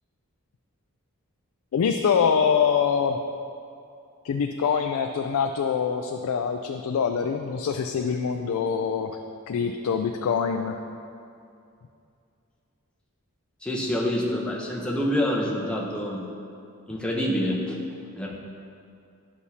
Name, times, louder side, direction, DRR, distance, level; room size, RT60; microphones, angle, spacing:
voice 1, 1.7-3.2 4.2-9.2 9.5-10.8, left 6 dB, 75° left, 5 dB, 0.3 m, -24 dB
voice 2, 13.6-16.3 16.9-17.8 18.2-18.4, left 1 dB, 5° left, -3 dB, 0.7 m, -27 dB
9.9 x 6.0 x 2.8 m, 2.5 s
head